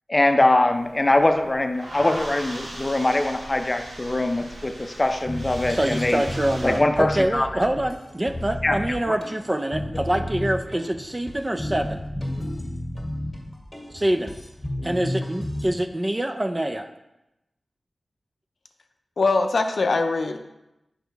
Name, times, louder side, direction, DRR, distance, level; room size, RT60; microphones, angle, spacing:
voice 1, 0.1-6.2 6.6-7.6 8.6-8.8 9.1-9.2, left 2 dB, 30° left, 7 dB, 0.5 m, -22 dB
sound 1, 0.7-6.8, right 1 dB, 90° right, 1.3 m, -39 dB
sound 2, 5.3-15.7, left 1 dB, 10° left, 1.7 m, -32 dB
voice 2, 5.7-12.0 13.9-14.3 14.8-16.9, right 1 dB, 25° right, 6 dB, 0.4 m, -25 dB
voice 3, 19.2-20.4, left 3 dB, 75° left, 6 dB, 0.5 m, -22 dB
6.3 x 5.0 x 3.4 m, 0.92 s
wide cardioid pair, 70°, 0 cm